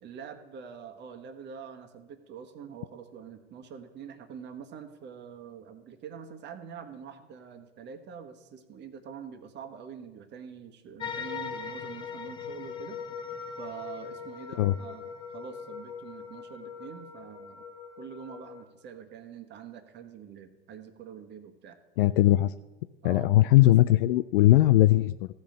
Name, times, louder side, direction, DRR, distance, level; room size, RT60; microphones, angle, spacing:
voice 1, 0.0-13.0 13.6-17.6 18.0-21.8 23.0-23.7, right 7 dB, 35° right, 7 dB, 1.3 m, -45 dB
sound 1, 11.0-18.6, left 6 dB, 15° left, 0.9 m, -40 dB
voice 2, 22.0-22.5 23.0-25.3, left 15 dB, 60° left, 13 dB, 0.4 m, -20 dB
14.5 x 5.4 x 7.6 m, 1.2 s
hypercardioid pair, 100°, 32 cm